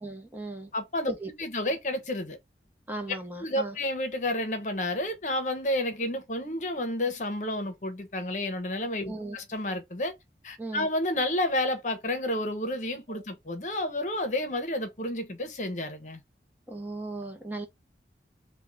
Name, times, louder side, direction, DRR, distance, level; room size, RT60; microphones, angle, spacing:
voice 1, 0.0-0.7 1.1-1.3 2.9-3.8 9.0-9.4 10.6-10.9 13.1-13.2 16.7-17.7, right 2 dB, 10° right, 0.9 m, -37 dB
voice 2, 0.7-1.1 1.4-2.4 3.4-10.1 10.4-16.2, left 1 dB, 45° left, 0.9 m, -30 dB
3.6 x 2.3 x 3.9 m
head